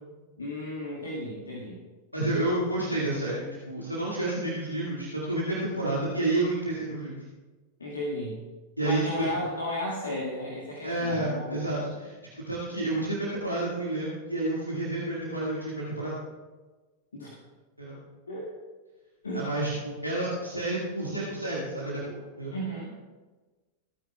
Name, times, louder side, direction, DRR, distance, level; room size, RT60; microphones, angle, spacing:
voice 1, 0.4-1.8 7.8-8.4 8.8-11.7 17.1-17.3 18.3-18.5 19.2-19.5 22.5-22.9, left 1 dB, 75° left, -3 dB, 1.8 m, -34 dB
voice 2, 2.1-7.2 8.8-9.3 10.8-16.1 17.8-18.0 19.3-22.5, right 2 dB, 90° right, -6 dB, 2.0 m, -30 dB
26.0 x 9.2 x 2.3 m, 1.3 s
figure-of-eight pair, 90°, 0 cm